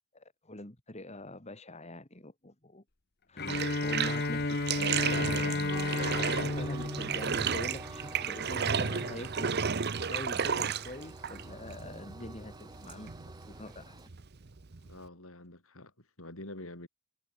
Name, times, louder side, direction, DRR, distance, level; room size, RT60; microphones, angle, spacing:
voice 1, 0.1-2.8 3.3-3.5 3.8-9.6 10.1-13.1 13.5-14.0, left 1 dB, 30° left, 2.4 m, -44 dB
Bowed string instrument, 3.4-8.3, left 2 dB, 45° left, 1.5 m, -33 dB
Bathtub (filling or washing), 3.4-15.1, right 6 dB, 45° right, 0.8 m, -34 dB
Train, 5.7-14.1, right 1 dB, 20° right, 4.6 m, -47 dB
voice 2, 14.8-16.9, left 1 dB, 65° left, 5.3 m, -47 dB
head